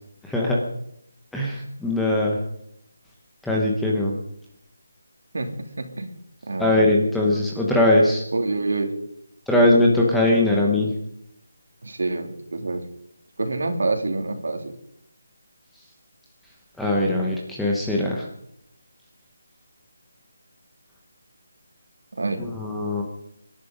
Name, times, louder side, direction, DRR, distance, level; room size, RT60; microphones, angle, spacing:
voice 1, 0.3-0.6 1.3-2.4 3.4-4.1 6.6-8.2 9.5-10.9 16.8-18.3 22.5-23.0, left 1 dB, ahead, -3 dB, 1.0 m, -20 dB
voice 2, 5.3-6.1 6.5-6.8 8.3-9.0 11.8-12.9 13.4-14.8 22.1-22.5, right 2 dB, 60° right, 5 dB, 2.9 m, -27 dB
25.0 x 11.0 x 5.2 m, 0.75 s
figure-of-eight pair, 180°, 0 cm